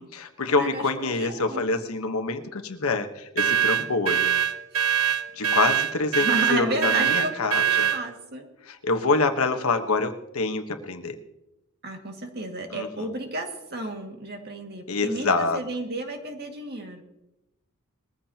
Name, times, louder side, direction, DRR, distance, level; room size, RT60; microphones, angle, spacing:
voice 1, 0.0-4.3 5.3-7.9 8.7-11.2 12.7-13.1 14.9-15.6, left 3 dB, 70° left, 6 dB, 1.2 m, -26 dB
voice 2, 0.6-1.7 6.2-8.5 11.8-17.0, right 1 dB, 45° right, 3 dB, 2.0 m, -32 dB
sound 1, 3.4-8.0, right 8 dB, 80° right, 1.1 m, -23 dB
21.0 x 14.5 x 2.9 m, 0.92 s
head